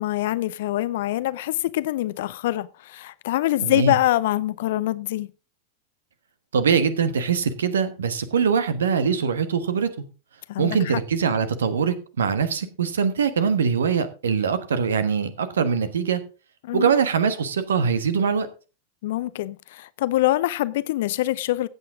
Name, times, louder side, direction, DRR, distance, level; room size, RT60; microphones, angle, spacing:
voice 1, 0.0-5.3 10.5-10.9 16.6-16.9 19.0-21.7, left 15 dB, 55° left, 0.6 m, -24 dB
voice 2, 3.6-3.9 6.5-9.9 10.6-16.2 16.7-18.5, right 6 dB, 65° right, 1.3 m, -22 dB
15.5 x 8.3 x 3.7 m
figure-of-eight pair, 90°, 0 cm